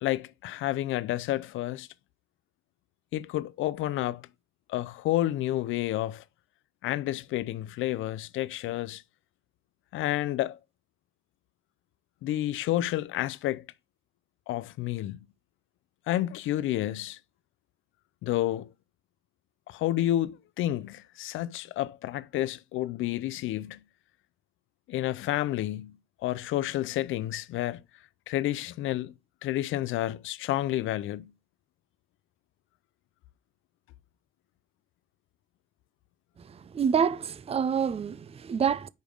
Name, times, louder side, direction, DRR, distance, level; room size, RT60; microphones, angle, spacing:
voice 1, 0.0-1.9 3.1-4.2 4.7-6.2 6.8-9.0 9.9-10.6 12.2-13.6 14.5-15.2 16.1-17.2 18.2-18.7 19.7-23.8 24.9-26.0 26.2-27.8 28.3-29.1 29.4-31.3, left 14 dB, 80° left, 0.5 m, -30 dB
voice 2, 36.4-38.9, right 7 dB, 30° right, 0.5 m, -27 dB
5.2 x 5.1 x 6.3 m
cardioid pair, 90°, 20 cm